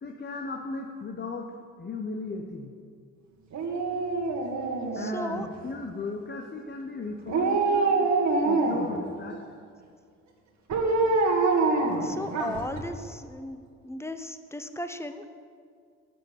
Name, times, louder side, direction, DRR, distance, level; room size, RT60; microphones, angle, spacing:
voice 1, 0.0-2.7 4.9-8.1 8.4-9.4, left 3 dB, 30° left, 2 dB, 1.2 m, -37 dB
Dog, 3.5-5.6 7.3-9.0 10.7-12.8 13.2-13.3, right 3 dB, 50° right, 2.0 m, -25 dB
voice 2, 4.9-5.5 12.0-15.3, left 1 dB, 5° left, 9 dB, 1.0 m, -36 dB
11.0 x 6.7 x 8.3 m, 2.2 s
hypercardioid pair, 55°, 36 cm